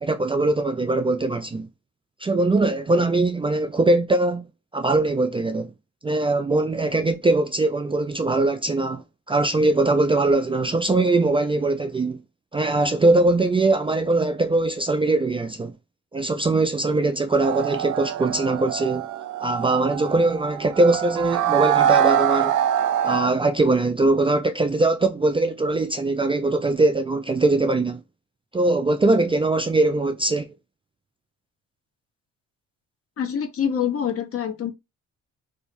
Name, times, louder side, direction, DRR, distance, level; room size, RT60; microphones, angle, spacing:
voice 1, 0.0-1.7 2.2-4.5 4.7-5.7 6.0-12.2 12.5-15.7 16.1-19.1 19.4-22.6 23.0-28.0 28.5-30.5, right 2 dB, 20° right, 0.4 m, -21 dB
sound 1, 17.4-23.3, right 10 dB, 80° right, 0.5 m, -24 dB
voice 2, 33.2-34.7, left 8 dB, 50° left, 0.9 m, -25 dB
3.7 x 2.7 x 2.5 m
cardioid pair, 90°, 30 cm